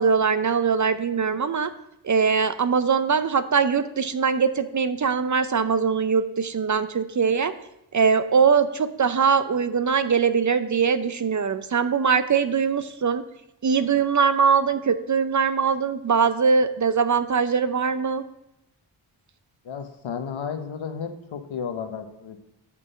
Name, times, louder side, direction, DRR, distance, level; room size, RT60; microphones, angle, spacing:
voice 1, 0.0-1.7 2.0-7.5 7.9-13.2 13.6-18.2, right 6 dB, 40° right, 12 dB, 0.6 m, -22 dB
voice 2, 19.6-22.4, left 6 dB, 70° left, 7 dB, 1.0 m, -33 dB
8.4 x 3.6 x 6.7 m, 0.83 s
cardioid pair, 45°, 49 cm